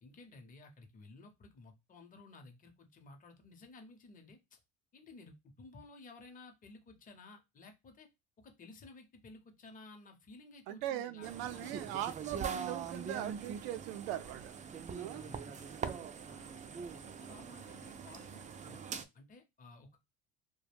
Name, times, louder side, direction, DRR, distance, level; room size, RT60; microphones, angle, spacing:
voice 1, 0.0-4.6 4.9-8.1 8.4-11.9 15.1-15.7 16.3-16.6 16.9-20.0, left 3 dB, 25° left, 0.7 m, -55 dB
voice 2, 10.7-14.6 14.9-15.2 15.8-16.1, right 12 dB, 85° right, 0.5 m, -40 dB
sound 1, 11.2-19.0, right 6 dB, 25° right, 0.4 m, -43 dB
2.3 x 2.2 x 3.3 m
supercardioid pair, 85°, 30 cm